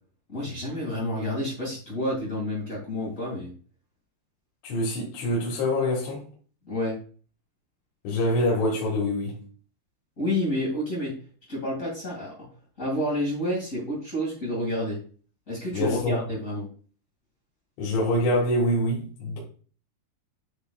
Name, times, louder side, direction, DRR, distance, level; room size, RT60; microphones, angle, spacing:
voice 1, 0.3-3.5 6.6-7.0 10.2-11.1 11.5-12.3 12.8-15.0 15.5-16.7, left 1 dB, 60° left, 0.8 m, -29 dB
voice 2, 4.6-6.2 8.0-9.4 15.7-16.2 17.8-19.4, left 1 dB, 80° left, 4.1 m, -25 dB
11.0 x 4.0 x 2.3 m
omnidirectional pair, 5.4 m